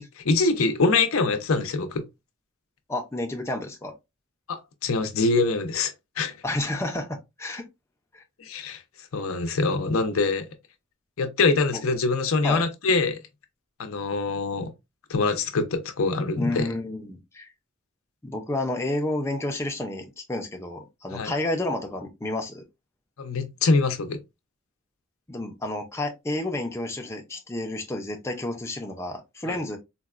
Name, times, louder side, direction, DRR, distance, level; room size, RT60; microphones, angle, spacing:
voice 1, 0.2-2.0 4.5-6.3 8.4-8.8 9.1-10.5 11.2-13.2 13.8-14.7 15.1-16.7 21.1-21.3 23.2-24.2 29.5-29.6, left 3 dB, 85° left, 0.6 m, -24 dB
voice 2, 2.9-3.9 6.4-7.7 8.1-8.2 11.7-11.8 12.4-12.7 16.4-17.5 18.2-22.6 25.3-29.8, left 1 dB, 15° left, 0.5 m, -30 dB
3.9 x 2.1 x 2.4 m
head